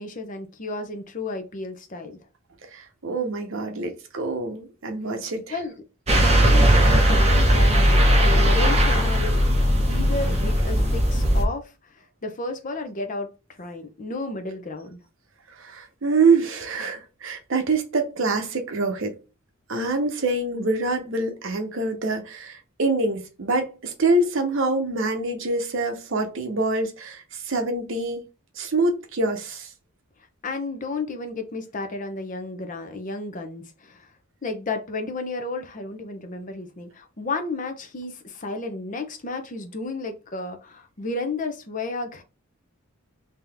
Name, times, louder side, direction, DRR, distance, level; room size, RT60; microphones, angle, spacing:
voice 1, 0.0-2.2 5.5-5.7 6.2-9.4 9.9-13.3 13.6-15.0 30.4-34.1 34.4-42.2, left 3 dB, 35° left, 0.7 m, -32 dB
voice 2, 2.6-5.7 15.6-19.2 19.7-28.3 28.5-29.7, right 3 dB, 60° right, 0.8 m, -25 dB
sound 1, 6.1-11.4, equal, 30° right, 0.9 m, -18 dB
3.8 x 2.8 x 3.4 m
head